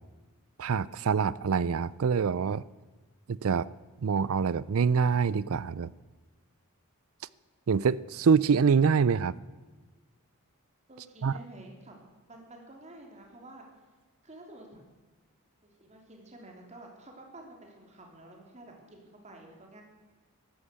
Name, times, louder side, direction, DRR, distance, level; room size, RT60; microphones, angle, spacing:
voice 1, 0.6-2.6 3.3-3.7 4.0-5.9 7.7-9.4 11.2-11.3, right 6 dB, 65° right, 0.4 m, -25 dB
voice 2, 10.9-12.0 12.3-13.7 14.2-14.8 15.6-19.8, right 2 dB, 30° right, 3.1 m, -50 dB
13.0 x 11.5 x 8.3 m
head